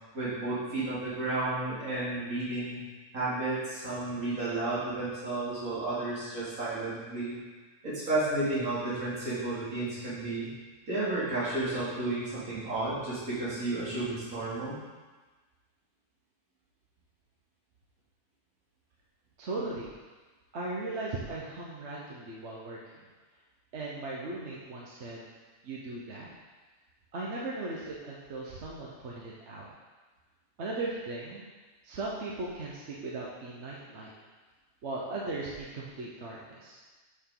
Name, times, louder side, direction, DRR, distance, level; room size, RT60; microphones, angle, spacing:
voice 1, 0.1-2.8 3.1-7.4 7.8-10.5 10.9-14.8, right 2 dB, 75° right, -10 dB, 3.0 m, -32 dB
voice 2, 19.4-19.9 20.5-23.1 23.7-25.2 25.6-26.3 27.1-29.7 30.6-31.4 31.8-34.1 34.8-36.8, right 2 dB, 55° right, -4 dB, 1.2 m, -38 dB
7.1 x 7.0 x 3.8 m, 1.3 s
omnidirectional pair, 1.5 m